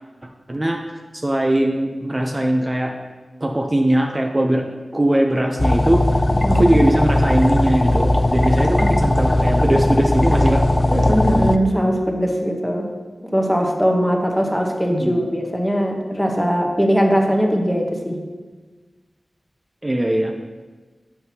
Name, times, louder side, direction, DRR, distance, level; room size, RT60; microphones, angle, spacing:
voice 1, 0.5-0.8 1.1-2.9 3.4-4.6 4.9-6.0 6.5-10.6 15.0-15.3 19.8-20.3, right 1 dB, 30° right, 2 dB, 0.5 m, -20 dB
sound 1, 5.6-11.6, left 1 dB, 35° left, 0.3 m, -18 dB
voice 2, 10.9-12.9 13.2-18.2, equal, 5° left, 1 dB, 0.9 m, -20 dB
7.6 x 5.8 x 2.8 m, 1.3 s
wide cardioid pair, 65°, 0 cm